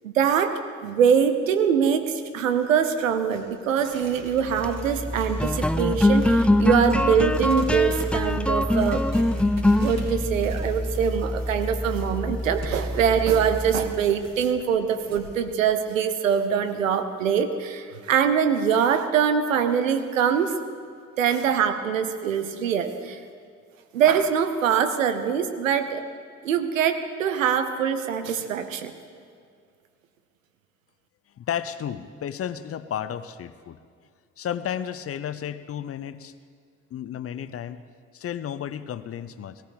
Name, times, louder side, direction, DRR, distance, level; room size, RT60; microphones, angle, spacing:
voice 1, 0.0-9.0 9.8-20.6 21.2-23.2 23.9-26.0 26.4-28.9, right 7 dB, 75° right, 9 dB, 0.9 m, -23 dB
Tearing, 2.0-5.7 5.9-15.3, right 2 dB, 40° right, 3.2 m, -44 dB
sound 1, 4.4-14.0, left 1 dB, 5° left, 0.5 m, -24 dB
voice 2, 31.4-33.8 34.4-36.3 36.9-37.8 38.1-39.6, left 9 dB, 35° left, 13 dB, 0.7 m, -32 dB
18.0 x 14.5 x 5.0 m, 2.3 s
figure-of-eight pair, 45°, 39 cm